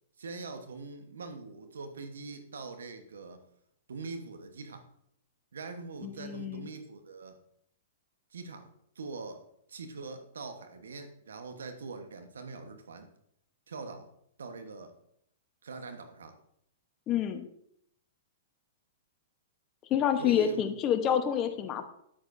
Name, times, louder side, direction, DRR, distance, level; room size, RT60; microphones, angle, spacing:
voice 1, 0.2-3.4 3.9-4.9 5.5-7.4 8.3-8.7 8.9-9.4 9.7-13.1 13.7-14.1 14.4-14.9 15.6-16.4 20.2-20.7, right 4 dB, 80° right, 7 dB, 1.1 m, -42 dB
voice 2, 6.0-6.7 17.1-17.4 19.9-21.8, left 9 dB, 30° left, 8 dB, 0.9 m, -28 dB
9.1 x 8.7 x 2.6 m, 0.72 s
hypercardioid pair, 120°, 0 cm